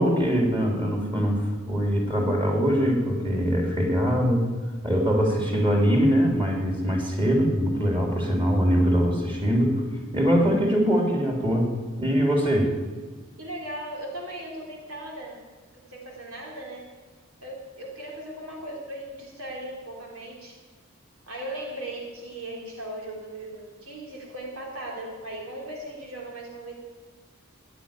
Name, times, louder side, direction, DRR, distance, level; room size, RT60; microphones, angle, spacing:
voice 1, 0.0-4.5 4.8-9.8 10.1-11.7 12.0-12.7, equal, 25° right, 0 dB, 3.6 m, -22 dB
voice 2, 13.4-15.4 15.7-16.9 17.4-20.6 21.3-26.7, right 1 dB, 80° right, -1 dB, 3.5 m, -38 dB
15.5 x 10.5 x 9.1 m, 1.4 s
head